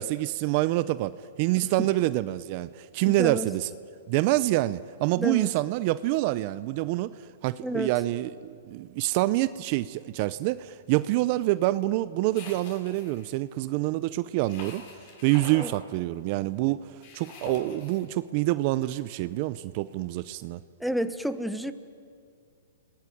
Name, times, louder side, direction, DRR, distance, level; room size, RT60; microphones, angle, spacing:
voice 1, 0.0-3.7 4.1-14.8 15.2-20.6, right 17 dB, 40° right, 15 dB, 0.7 m, -27 dB
voice 2, 3.1-3.5 5.2-5.5 7.6-7.9 15.6-15.7 20.8-21.7, equal, ahead, 9 dB, 1.1 m, -30 dB
sound 1, 12.3-13.3 14.5-15.7 17.0-18.0, left 4 dB, 45° left, 7.2 m, -44 dB
30.0 x 20.0 x 9.5 m, 2.3 s
hypercardioid pair, 140°, 0 cm